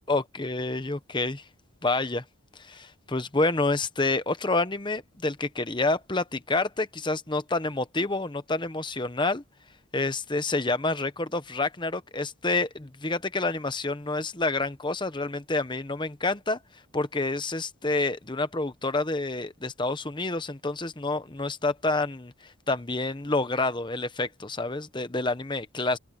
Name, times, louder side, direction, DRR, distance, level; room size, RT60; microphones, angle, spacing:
voice 1, 0.1-1.4 1.8-2.2 2.6-9.4 9.9-16.6 16.9-26.0, left 2 dB, 20° left, 1.0 m, -28 dB
open air
head